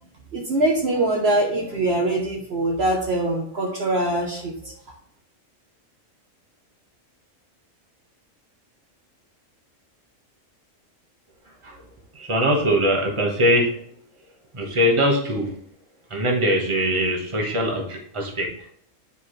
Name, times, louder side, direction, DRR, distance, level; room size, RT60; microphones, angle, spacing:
voice 1, 0.3-4.7, right 1 dB, 55° right, 1 dB, 1.1 m, -23 dB
voice 2, 12.1-13.7 14.5-15.6 16.1-18.5, equal, 25° right, 1 dB, 1.2 m, -22 dB
9.5 x 4.7 x 3.2 m, 0.65 s
omnidirectional pair, 1.3 m